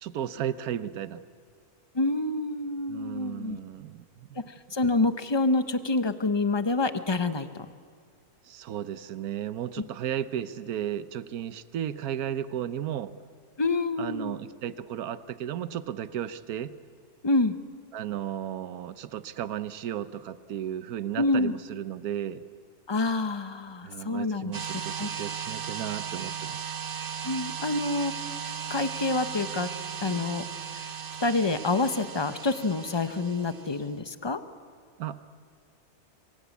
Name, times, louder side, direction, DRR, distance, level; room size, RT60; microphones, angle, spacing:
voice 1, 0.0-1.2 2.9-4.4 8.5-13.1 14.0-16.7 17.9-22.4 23.8-26.7 35.0-35.2, right 10 dB, 75° right, 13 dB, 1.3 m, -34 dB
voice 2, 1.9-3.6 4.3-4.4 4.7-7.7 13.6-14.4 17.2-17.6 21.1-21.5 22.9-24.5 25.0-25.1 27.2-28.1 28.7-29.7 30.0-30.4 30.7-30.9 31.2-34.4, left 2 dB, 20° left, 10 dB, 0.8 m, -27 dB
sound 1, 24.5-33.9, right 7 dB, 50° right, 0.7 m, -36 dB
25.0 x 23.0 x 8.4 m, 2.1 s
omnidirectional pair, 1.6 m